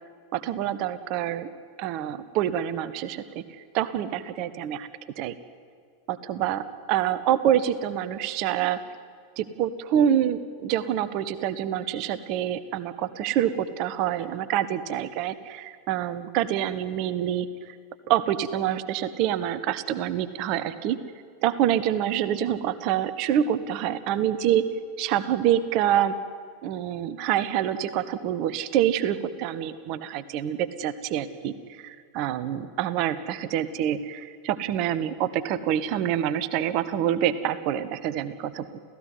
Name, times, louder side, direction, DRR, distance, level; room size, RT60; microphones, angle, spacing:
voice 1, 0.3-1.5 1.8-3.4 3.7-4.9 5.2-5.3 6.1-8.8 9.4-17.8 18.1-21.0 21.4-24.6 25.0-26.1 26.6-38.8, right 10 dB, 40° right, 14 dB, 1.2 m, -26 dB
29.0 x 15.5 x 9.7 m, 2.1 s
figure-of-eight pair, 90°, 0 cm